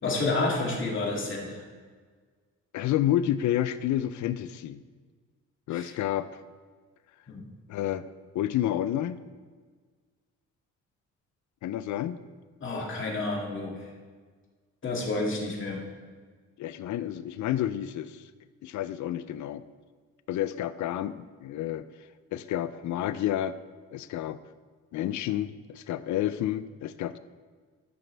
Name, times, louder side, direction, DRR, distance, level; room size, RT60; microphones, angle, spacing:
voice 1, 0.0-1.6 5.7-5.9 7.3-7.4 12.6-13.8 14.8-15.8, left 2 dB, 40° left, -2 dB, 2.3 m, -30 dB
voice 2, 2.7-4.8 5.7-6.4 7.7-8.0 8.3-9.2 11.6-12.2 16.6-18.2 18.6-19.6 20.3-21.8 22.3-23.5 23.9-24.4 24.9-27.2, left 12 dB, 70° left, 14 dB, 0.5 m, -30 dB
13.5 x 6.0 x 3.3 m, 1.5 s
cardioid pair, 90°, 30 cm